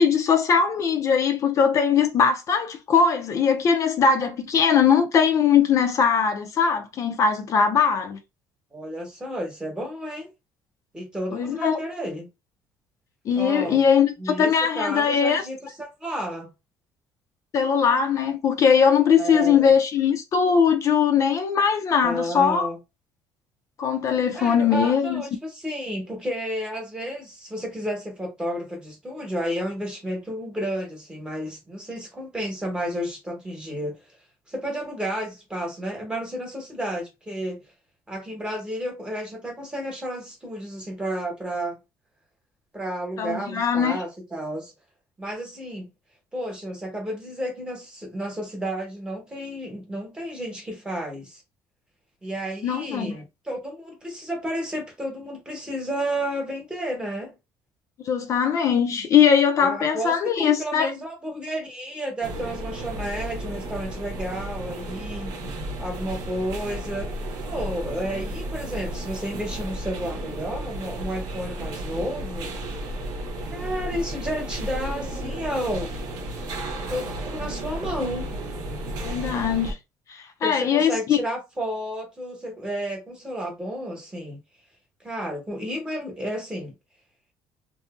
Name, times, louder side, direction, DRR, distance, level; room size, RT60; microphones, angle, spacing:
voice 1, 0.0-8.2 11.3-11.8 13.3-15.4 17.5-22.7 23.8-25.2 43.2-44.0 52.6-53.1 58.0-60.9 79.0-79.8 80.1-81.2, left 6 dB, 40° left, 0.4 m, -20 dB
voice 2, 8.7-10.3 10.9-12.3 13.3-13.8 14.2-16.5 19.2-19.7 22.0-22.8 24.3-34.0 34.5-37.6 38.1-41.8 42.7-44.7 45.2-45.9 46.3-51.4 52.2-57.4 59.6-65.3 65.8-67.1 67.5-72.5 73.5-76.0 76.9-78.3 80.4-84.4 85.0-86.7, equal, 10° right, 1.0 m, -31 dB
sound 1, 62.2-79.7, right 1 dB, 70° right, 0.9 m, -33 dB
2.6 x 2.5 x 2.4 m
cardioid pair, 140°, 8 cm